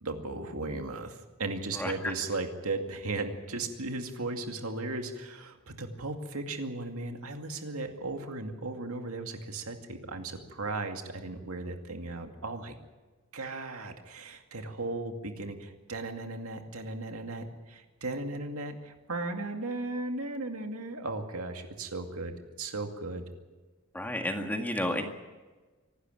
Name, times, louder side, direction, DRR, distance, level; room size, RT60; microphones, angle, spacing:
voice 1, 0.0-12.7 13.3-23.2, right 2 dB, 75° right, 4 dB, 2.3 m, -36 dB
voice 2, 1.7-2.1 23.9-25.0, left 1 dB, 10° left, 3 dB, 1.9 m, -31 dB
25.0 x 12.5 x 9.0 m, 1.3 s
head